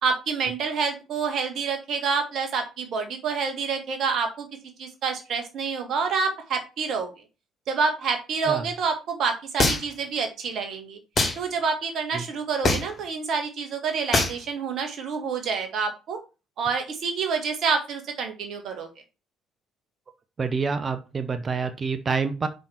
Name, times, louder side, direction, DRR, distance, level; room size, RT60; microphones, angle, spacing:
voice 1, 0.0-4.5 4.8-7.1 7.7-11.0 11.4-16.2 16.6-18.9, right 5 dB, 60° right, 5 dB, 1.8 m, -27 dB
sound 1, 9.6-10.0 11.2-11.4 12.6-13.0 14.1-14.4, left 3 dB, 40° left, 3.3 m, -22 dB
voice 2, 20.4-22.5, right 5 dB, 35° right, 9 dB, 1.0 m, -27 dB
5.4 x 5.2 x 5.9 m, 0.30 s
hypercardioid pair, 50°, 0 cm